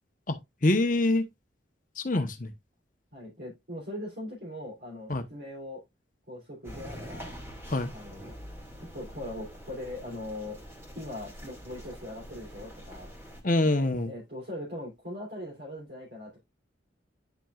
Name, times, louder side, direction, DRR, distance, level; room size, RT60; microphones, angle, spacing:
voice 1, 0.3-1.3 2.0-2.5 5.1-5.2 7.7-7.9 13.4-14.1, left 2 dB, 45° left, 1.0 m, -25 dB
voice 2, 3.1-5.8 6.3-7.3 7.9-8.3 8.8-10.6 11.0-13.1 13.6-16.4, left 1 dB, 60° right, 3.5 m, -40 dB
sound 1, 6.6-13.4, equal, 15° right, 2.2 m, -45 dB
10.0 x 6.0 x 2.4 m
head